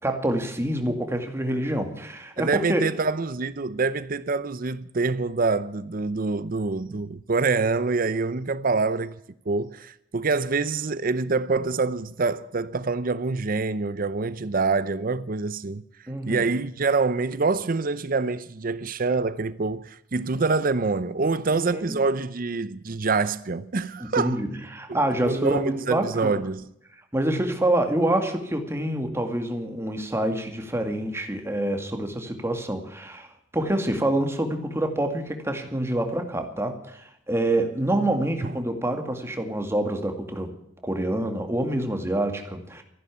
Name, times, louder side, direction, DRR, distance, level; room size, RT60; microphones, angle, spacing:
voice 1, 0.0-2.8 16.1-16.4 21.5-22.0 24.0-26.4 27.1-33.3 33.5-40.5 40.8-42.8, right 1 dB, 15° right, 2.2 m, -26 dB
voice 2, 2.4-9.2 9.5-15.8 16.3-24.4 24.9-25.0 25.2-26.7 38.4-38.5, right 4 dB, 50° right, 0.7 m, -26 dB
14.5 x 11.5 x 8.5 m
head